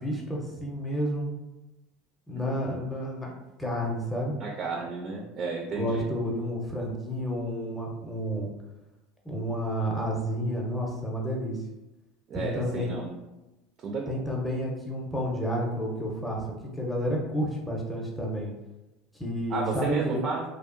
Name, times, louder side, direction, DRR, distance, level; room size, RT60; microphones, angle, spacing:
voice 1, 0.0-1.3 2.3-3.3 3.6-4.3 5.7-8.5 9.2-11.6 12.3-12.9 14.1-16.4 16.7-18.5 19.1-20.2, equal, 5° left, -1 dB, 0.6 m, -30 dB
voice 2, 4.4-6.1 12.3-13.1 13.8-14.2 19.5-20.4, right 4 dB, 40° right, 1 dB, 0.4 m, -32 dB
2.7 x 2.1 x 2.5 m, 1.0 s
supercardioid pair, 115°, 0 cm